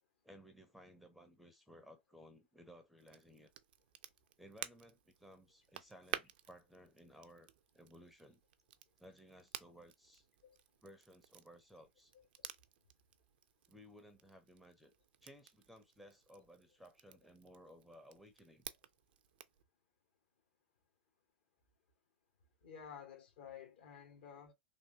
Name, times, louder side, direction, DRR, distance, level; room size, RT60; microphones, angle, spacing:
voice 1, 0.2-3.5 4.4-7.5 7.7-8.4 9.0-10.3 10.8-12.1 13.7-14.9 15.2-18.7, equal, ahead, 0.5 m, -59 dB
Crackle, 3.0-19.6, right 12 dB, 55° right, 0.4 m, -53 dB
voice 2, 12.1-12.5 22.6-24.5, left 8 dB, 60° left, 1.2 m, -53 dB
3.4 x 2.6 x 2.7 m
figure-of-eight pair, 95°, 6 cm